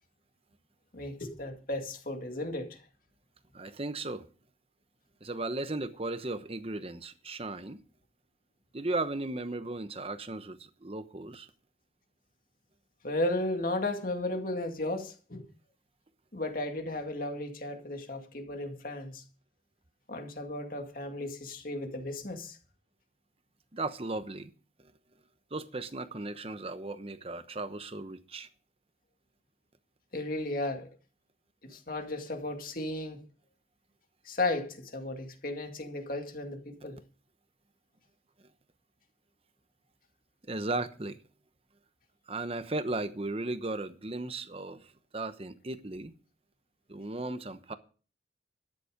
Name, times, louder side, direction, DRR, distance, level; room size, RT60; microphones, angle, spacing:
voice 1, 0.9-2.8 13.0-15.5 16.3-19.2 20.1-22.6 30.1-30.9 31.6-33.2 34.2-37.0, left 2 dB, 50° left, 2.2 m, -34 dB
voice 2, 3.5-4.3 5.2-7.8 8.7-11.5 23.7-24.5 25.5-28.5 40.5-41.2 42.3-44.8 45.1-46.1 46.9-47.7, right 2 dB, 35° right, 1.0 m, -36 dB
13.0 x 9.9 x 5.1 m
head